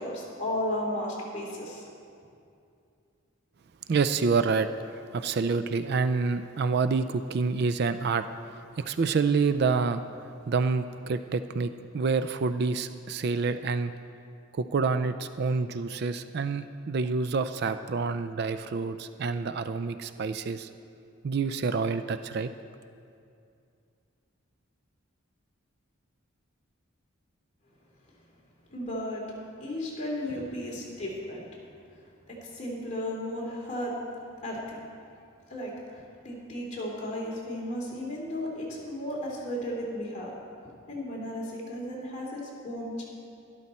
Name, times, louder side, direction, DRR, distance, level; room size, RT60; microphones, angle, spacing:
voice 1, 0.0-1.9 28.7-29.2 29.6-31.5 31.9-34.0 34.4-34.8 35.5-40.3 40.9-43.0, left 1 dB, 35° left, -4 dB, 2.7 m, -34 dB
voice 2, 3.9-8.3 8.8-10.0 10.5-13.9 14.5-20.7 21.2-22.5, right 4 dB, 50° right, 11 dB, 0.3 m, -27 dB
12.5 x 12.0 x 4.3 m, 2.5 s
head